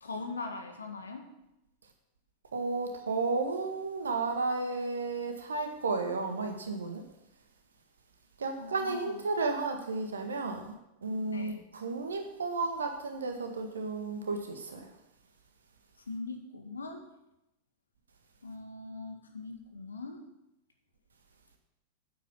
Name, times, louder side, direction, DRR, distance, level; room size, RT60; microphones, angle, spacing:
voice 1, 0.0-1.3 8.6-9.2 11.3-11.7 16.1-17.1 18.4-20.2, left 3 dB, 75° left, 5 dB, 1.7 m, -41 dB
voice 2, 2.5-7.0 8.4-10.7 11.0-14.9, right 3 dB, 70° right, 4 dB, 1.8 m, -33 dB
9.2 x 8.4 x 7.3 m, 0.89 s
figure-of-eight pair, 90°, 0 cm